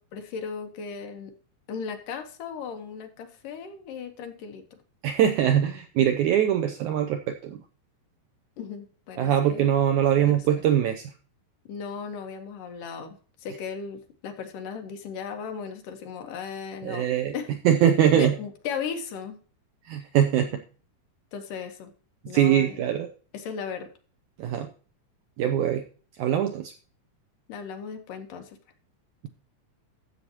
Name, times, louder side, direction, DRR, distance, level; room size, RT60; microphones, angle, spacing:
voice 1, 0.1-1.3 1.7-4.8 8.6-9.7 10.2-10.4 11.7-17.1 17.3-17.5 18.1-19.4 21.3-21.9 22.3-22.8 23.3-23.9 27.5-28.6, left 6 dB, 70° left, 5 dB, 2.6 m, -36 dB
voice 2, 5.0-7.6 9.2-11.1 16.8-17.4 17.7-18.3 19.9-20.6 22.3-23.1 24.4-24.7 25.4-25.9 26.2-26.7, right 10 dB, 80° right, 6 dB, 1.8 m, -22 dB
13.0 x 7.8 x 2.9 m, 0.39 s
omnidirectional pair, 4.1 m